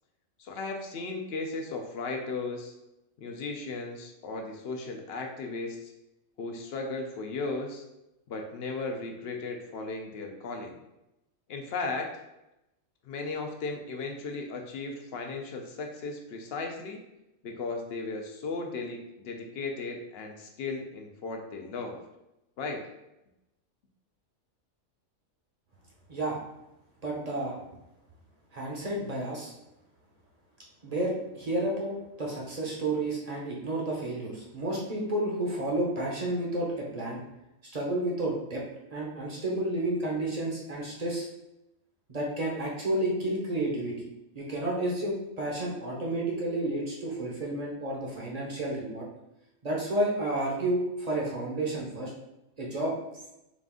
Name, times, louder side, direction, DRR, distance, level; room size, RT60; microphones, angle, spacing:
voice 1, 0.4-2.7 3.2-5.9 6.4-7.8 8.3-10.7 11.5-12.1 13.0-17.0 17.4-22.0 22.6-22.8, left 3 dB, 60° left, 3 dB, 0.7 m, -36 dB
voice 2, 27.0-27.6 28.5-29.5 30.8-37.2 37.7-38.6 38.9-41.3 42.1-43.9 44.3-49.0 49.6-52.1 52.6-52.9, right 1 dB, 35° right, -3 dB, 0.7 m, -31 dB
4.0 x 2.5 x 3.6 m, 0.91 s
omnidirectional pair, 1.4 m